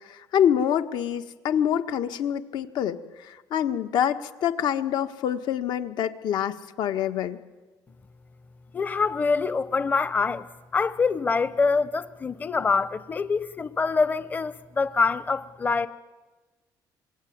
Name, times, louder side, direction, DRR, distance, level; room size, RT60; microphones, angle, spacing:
voice 1, 0.1-7.4, left 9 dB, 70° left, 1.5 m, -26 dB
voice 2, 8.7-10.5 10.7-15.9, left 4 dB, 20° left, 0.8 m, -25 dB
26.5 x 22.0 x 9.4 m
cardioid pair, 130°, 8 cm